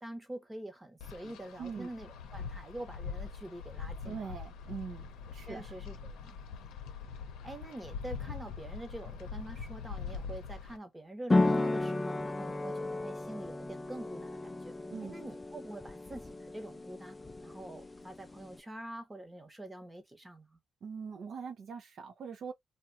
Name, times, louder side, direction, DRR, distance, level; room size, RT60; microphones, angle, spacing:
voice 1, 0.0-4.3 5.5-6.4 7.4-14.7 15.0-17.2 17.4-20.6, right 1 dB, 15° right, 0.9 m, -46 dB
Wind, 1.0-10.8, left 5 dB, 85° left, 0.6 m, -43 dB
voice 2, 1.6-1.9 4.1-5.1 5.3-5.7 14.9-15.2 20.8-22.5, right 6 dB, 60° right, 0.5 m, -42 dB
sound 1, 11.3-18.6, left 2 dB, 15° left, 0.3 m, -34 dB
2.7 x 2.2 x 2.6 m
cardioid pair, 90°, 0 cm